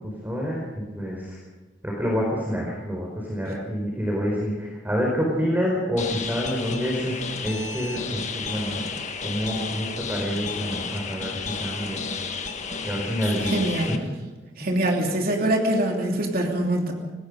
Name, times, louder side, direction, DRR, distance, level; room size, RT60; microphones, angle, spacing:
voice 1, 0.2-1.4 1.8-8.9 9.2-12.3 12.8-13.6 13.9-14.0, equal, 10° right, -2 dB, 4.6 m, -28 dB
sound 1, 6.0-14.0, left 5 dB, 40° left, 1.6 m, -32 dB
voice 2, 13.4-13.9 14.6-16.9, right 1 dB, 50° right, 0 dB, 3.1 m, -24 dB
26.5 x 19.5 x 5.2 m, 1.3 s
head